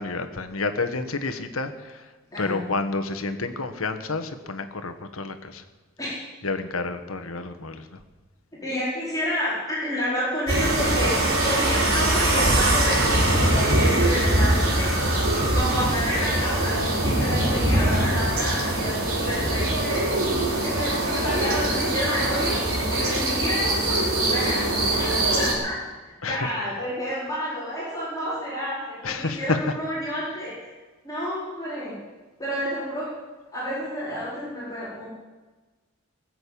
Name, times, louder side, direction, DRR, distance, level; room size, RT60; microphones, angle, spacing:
voice 1, 0.0-2.1 2.4-5.6 6.4-8.0 15.7-15.9 26.2-26.5 29.0-29.6, left 3 dB, 80° left, 8 dB, 1.4 m, -29 dB
voice 2, 8.6-14.9 15.3-16.7 17.0-20.1 20.6-22.6 22.9-24.0 24.3-24.6 25.0-25.7 26.3-30.5 31.0-31.9 32.4-33.1 33.5-35.1, equal, 15° left, -7 dB, 4.7 m, -30 dB
sound 1, 10.5-25.5, right 1 dB, 80° right, 4.9 m, -22 dB
19.5 x 7.8 x 8.6 m, 1.3 s
head